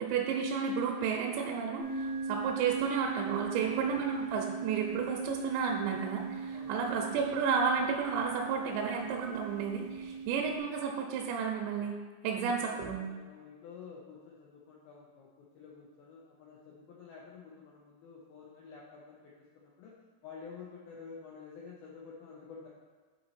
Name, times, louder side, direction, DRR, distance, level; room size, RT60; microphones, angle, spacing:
voice 1, 0.0-12.0 12.2-13.0, right 6 dB, 85° right, 0 dB, 2.8 m, -32 dB
sound 1, 1.8-10.6, right 5 dB, 70° left, 2.0 m, -39 dB
voice 2, 12.5-19.9 20.2-22.7, left 5 dB, 90° left, -4 dB, 2.1 m, -50 dB
8.5 x 4.2 x 4.2 m, 1.4 s
omnidirectional pair, 5.3 m